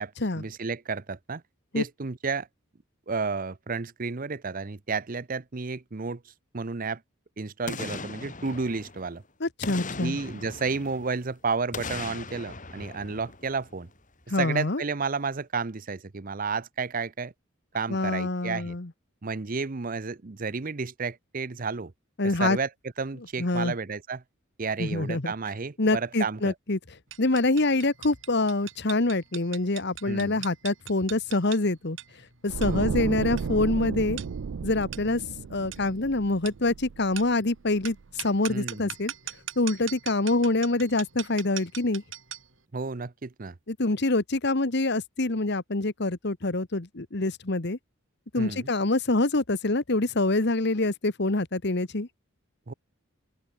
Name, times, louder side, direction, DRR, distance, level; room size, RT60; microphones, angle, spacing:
voice 1, 0.0-1.4 1.7-2.5 3.1-7.0 7.4-9.2 10.0-13.9 14.4-17.3 17.7-18.8 19.2-21.9 22.4-22.7 23.0-24.2 24.6-26.5 30.0-30.4 32.6-33.0 38.5-38.9 42.7-43.5 48.4-48.7 52.7-52.8, right 4 dB, 40° right, 0.7 m, -32 dB
Boom, 7.7-9.2 9.6-11.3 11.7-14.0 14.3-14.4, left 3 dB, 40° left, 3.9 m, -39 dB
voice 2, 9.4-10.2 14.3-14.8 17.9-18.9 22.2-22.6 23.4-23.7 24.8-25.3 25.8-26.8 27.2-32.0 32.4-34.2 34.6-35.2 35.5-39.1 39.6-42.0 43.7-47.8 48.3-52.1, left 2 dB, 55° left, 1.4 m, -26 dB
sound 1, 27.1-42.6, right 11 dB, 65° right, 5.9 m, -42 dB
sound 2, 32.5-37.6 37.9-38.1, right 5 dB, 85° right, 0.5 m, -33 dB
open air
head